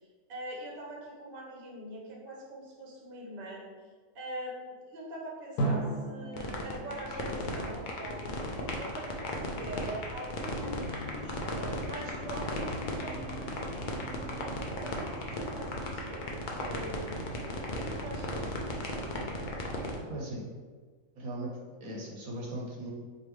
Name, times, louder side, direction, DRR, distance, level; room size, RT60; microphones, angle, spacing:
voice 1, 0.3-3.6 4.1-8.4 8.8-11.3 11.8-13.9 14.2-14.3 14.7-17.0 17.7-19.0, right 1 dB, 45° right, -3 dB, 0.9 m, -43 dB
Drum, 5.6-8.5, right 2 dB, 90° left, 1.3 m, -35 dB
sound 1, 6.3-20.0, left 2 dB, 70° left, 0.4 m, -35 dB
sound 2, 10.5-17.8, equal, 25° left, 0.9 m, -46 dB
voice 2, 20.1-20.4 21.2-22.9, right 1 dB, 70° right, -2 dB, 1.1 m, -38 dB
4.8 x 2.7 x 3.1 m, 1.5 s
omnidirectional pair, 1.6 m